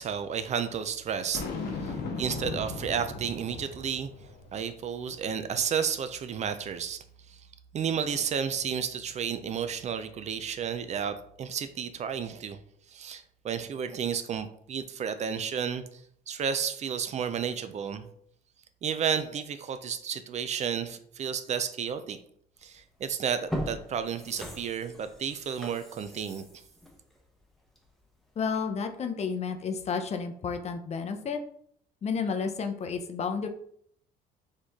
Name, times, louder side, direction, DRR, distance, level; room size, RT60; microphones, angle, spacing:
voice 1, 0.0-1.5 1.8-4.1 4.5-7.4 7.7-12.6 12.9-16.0 16.3-18.1 18.8-22.2 22.6-26.4, right 7 dB, 45° right, 10 dB, 0.4 m, -32 dB
Boom, 1.3-4.7, left 3 dB, 70° left, 1.0 m, -37 dB
sound 1, 22.7-22.9 23.3-28.0 28.4-28.5, equal, ahead, 0.9 m, -39 dB
voice 2, 28.4-31.4 32.0-33.5, left 5 dB, 40° left, 6 dB, 0.6 m, -31 dB
4.3 x 3.1 x 3.5 m, 0.65 s
cardioid pair, 110°, 17 cm